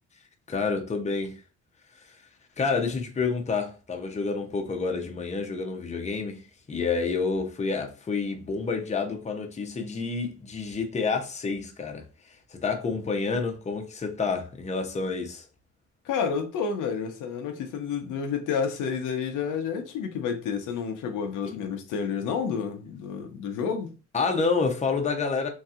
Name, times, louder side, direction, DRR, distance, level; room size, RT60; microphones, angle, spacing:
voice 1, 0.5-1.4 1.9-2.2 2.6-15.5 21.5-21.6 24.1-25.5, left 4 dB, 25° left, 0.7 m, -29 dB
voice 2, 16.0-23.9, left 6 dB, 85° left, 0.7 m, -30 dB
3.2 x 2.7 x 2.4 m
cardioid pair, 90°, 30 cm